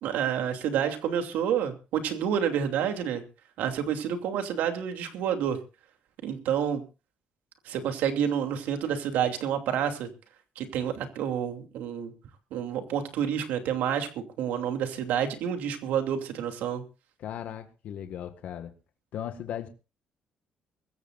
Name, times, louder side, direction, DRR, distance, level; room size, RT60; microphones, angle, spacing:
voice 1, 0.0-3.2 3.6-5.6 6.2-6.8 7.6-10.1 10.6-12.1 12.5-16.8, right 8 dB, 90° right, 6 dB, 2.8 m, -29 dB
voice 2, 17.2-18.7 19.1-19.7, left 10 dB, 60° left, 7 dB, 1.7 m, -37 dB
24.0 x 14.5 x 2.5 m, 0.32 s
cardioid pair, 160°, 3 cm